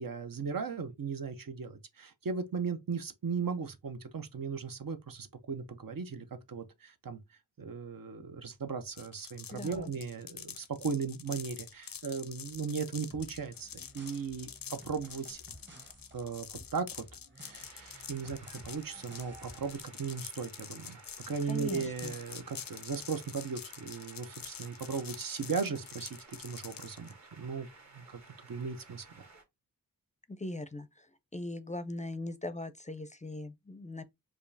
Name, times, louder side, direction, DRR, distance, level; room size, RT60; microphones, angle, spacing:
voice 1, 0.0-7.2 7.6-15.4 16.1-17.0 17.4-18.4 18.6-27.7 27.9-28.2 28.5-29.3, right 5 dB, 75° right, 0.7 m, -37 dB
sound 1, 8.9-27.1, left 8 dB, 75° left, 0.5 m, -47 dB
voice 2, 9.5-9.9 21.5-22.1 30.3-34.0, left 2 dB, 20° left, 0.4 m, -40 dB
sound 2, 13.1-19.9, right 1 dB, 30° right, 1.0 m, -54 dB
sound 3, 17.5-29.4, right 3 dB, 50° right, 1.2 m, -56 dB
4.9 x 2.4 x 2.6 m
wide cardioid pair, 75°, 34 cm